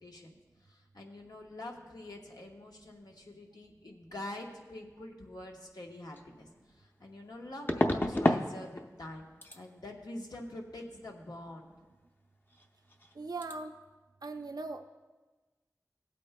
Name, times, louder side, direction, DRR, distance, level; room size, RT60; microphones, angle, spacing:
voice 1, 0.0-9.3 9.5-11.7, left 1 dB, 90° left, 0 dB, 1.1 m, -45 dB
sound 1, 6.1-6.2 7.7-8.5 8.8-9.1 9.4-9.6 12.5-12.6 12.9-13.1 13.4-13.5, left 1 dB, 30° left, 0.6 m, -29 dB
voice 2, 13.2-13.7 14.2-14.9, right 3 dB, 70° right, 6 dB, 0.5 m, -39 dB
17.0 x 8.3 x 2.2 m, 1.2 s
wide cardioid pair, 60°, 7 cm